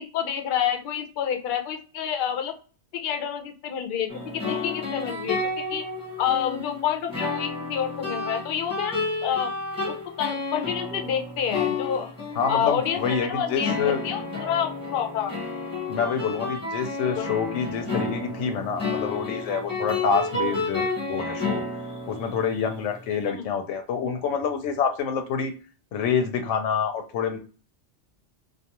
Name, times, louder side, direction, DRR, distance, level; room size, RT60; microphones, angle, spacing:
voice 1, 0.0-2.5 2.9-5.4 5.7-5.8 6.2-9.5 9.9-12.1 12.5-15.4 17.0-17.3 20.3-20.6 23.2-23.5, left 8 dB, 60° left, 5 dB, 0.6 m, -28 dB
sound 1, 4.1-23.0, left 3 dB, 15° left, 1.0 m, -31 dB
voice 2, 12.4-14.0 15.9-21.6 22.1-25.6 25.9-27.4, left 6 dB, 90° left, 7 dB, 0.9 m, -27 dB
2.4 x 2.3 x 2.8 m, 0.38 s
omnidirectional pair, 1.2 m